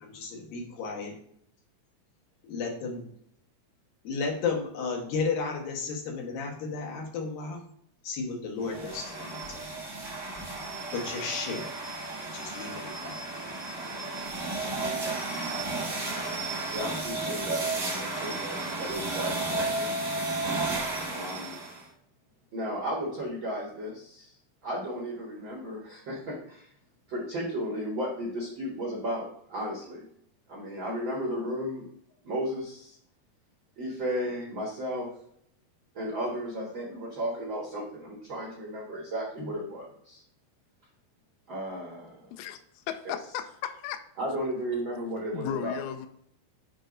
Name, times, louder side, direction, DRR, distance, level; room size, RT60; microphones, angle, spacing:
voice 1, 0.0-1.1 2.5-3.1 4.0-7.6 8.0-9.6 10.9-11.7 12.3-13.2 14.6-14.7, left 4 dB, 65° left, 2.8 m, -33 dB
sound 1, 8.6-21.8, right 2 dB, 25° right, 1.6 m, -33 dB
voice 2, 16.7-19.9 21.1-21.6 22.5-24.3 24.6-26.7 27.1-30.0 30.5-31.9 32.2-33.0 33.8-35.1 35.9-40.2 41.5-42.3 44.2-45.7, equal, 75° right, 1.1 m, -34 dB
voice 3, 42.9-44.0 45.3-46.1, left 9 dB, 90° left, 2.0 m, -35 dB
7.8 x 2.9 x 5.1 m
omnidirectional pair, 4.7 m